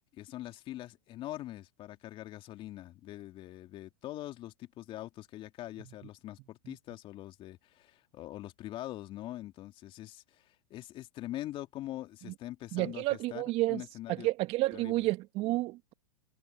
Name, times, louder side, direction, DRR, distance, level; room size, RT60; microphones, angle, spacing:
voice 1, 0.1-14.3 14.7-15.1, left 14 dB, 35° left, 3.1 m, -43 dB
voice 2, 12.7-13.8 14.1-15.9, right 18 dB, 40° right, 1.7 m, -30 dB
hypercardioid pair, 115°, 15 cm